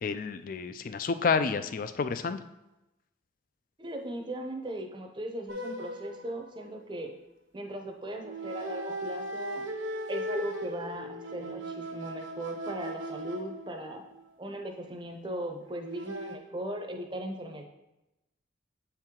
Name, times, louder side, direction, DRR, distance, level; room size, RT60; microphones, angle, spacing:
voice 1, 0.0-2.4, left 5 dB, 45° left, 11 dB, 0.3 m, -29 dB
voice 2, 3.8-7.1 7.5-9.7 10.1-14.0 14.4-17.6, right 1 dB, 25° right, 3 dB, 0.6 m, -38 dB
sound 1, 5.5-7.1 8.2-14.2 15.7-16.4, right 1 dB, 75° right, 0.9 m, -38 dB
7.8 x 4.6 x 3.7 m, 0.96 s
head